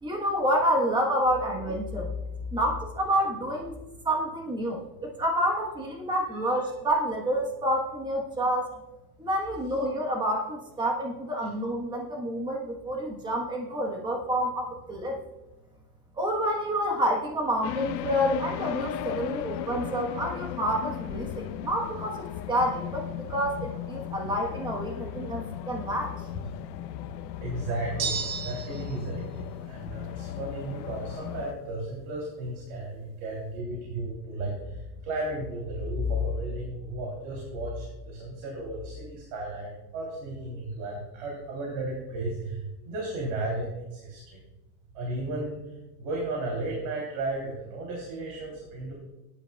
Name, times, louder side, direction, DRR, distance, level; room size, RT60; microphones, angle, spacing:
voice 1, 0.0-2.1 2.5-3.8 4.0-8.7 9.2-15.2 16.2-26.1, equal, 10° right, 0 dB, 1.2 m, -28 dB
sound 1, 17.6-31.5, left 11 dB, 80° left, 0.9 m, -36 dB
voice 2, 27.4-44.4 44.9-45.6 46.0-48.9, right 1 dB, 55° right, -1 dB, 3.1 m, -34 dB
sound 2, 28.0-29.0, right 6 dB, 35° right, 0.8 m, -32 dB
17.5 x 10.5 x 2.3 m, 1.0 s
supercardioid pair, 170°, 50 cm